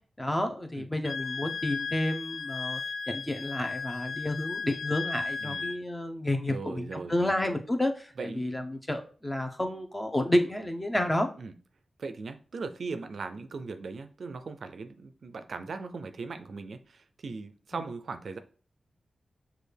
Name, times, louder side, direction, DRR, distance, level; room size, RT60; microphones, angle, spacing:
voice 1, 0.2-2.8 3.1-11.3, left 1 dB, 15° left, 5 dB, 0.7 m, -30 dB
Wind instrument woodwind instrument, 1.0-5.8, left 5 dB, 80° left, 0.3 m, -35 dB
voice 2, 5.4-5.7 6.5-7.6 8.2-8.4 11.4-11.5 12.0-18.4, right 4 dB, 70° right, 10 dB, 0.4 m, -39 dB
6.1 x 2.4 x 3.4 m, 0.41 s
cardioid pair, 55°, 0 cm